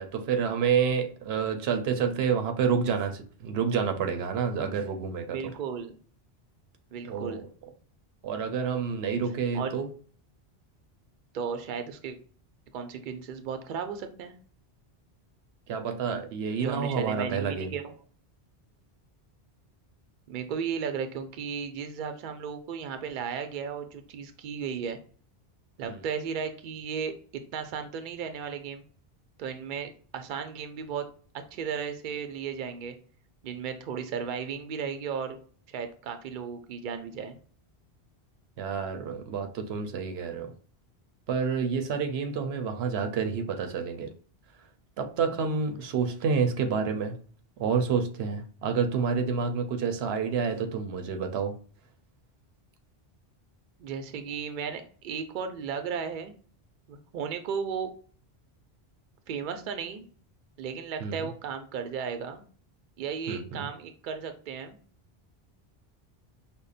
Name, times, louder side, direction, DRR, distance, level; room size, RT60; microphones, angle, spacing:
voice 1, 0.0-5.5 7.0-7.5 8.2-9.9 15.7-17.7 25.9-26.0 38.6-40.5 41.3-44.1 45.0-47.1 47.6-51.5 61.0-61.3 63.3-63.7, right 6 dB, 90° right, 6 dB, 0.8 m, -29 dB
voice 2, 5.3-6.0 6.9-7.5 9.5-9.7 11.3-12.2 12.7-14.4 16.6-17.9 20.3-25.0 25.8-27.2 27.5-28.8 29.4-31.1 31.5-32.9 33.4-35.4 35.7-37.4 53.8-56.3 56.9-57.9 59.3-60.0 60.6-62.4 63.0-64.8, right 6 dB, 60° right, 8 dB, 0.6 m, -35 dB
5.1 x 2.1 x 2.4 m, 0.42 s
omnidirectional pair, 1.0 m